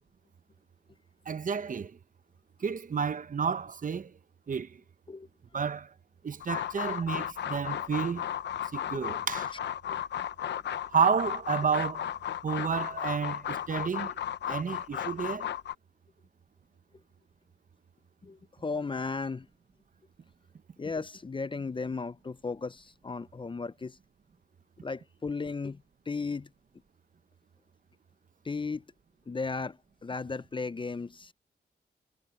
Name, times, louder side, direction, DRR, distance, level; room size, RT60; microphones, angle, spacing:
voice 1, 1.3-1.9 2.6-4.1 4.5-4.8 5.5-5.9 6.2-8.3 8.7-9.5 10.9-12.1 12.4-14.1 14.5-15.5, right 6 dB, 50° right, 0.9 m, -30 dB
sound 1, 6.4-15.7, left 10 dB, 90° left, 1.0 m, -34 dB
voice 2, 18.2-19.5 20.8-24.0 24.8-26.5 28.4-28.8 29.3-31.3, left 4 dB, 30° left, 0.6 m, -35 dB
cardioid pair, 70°, 18 cm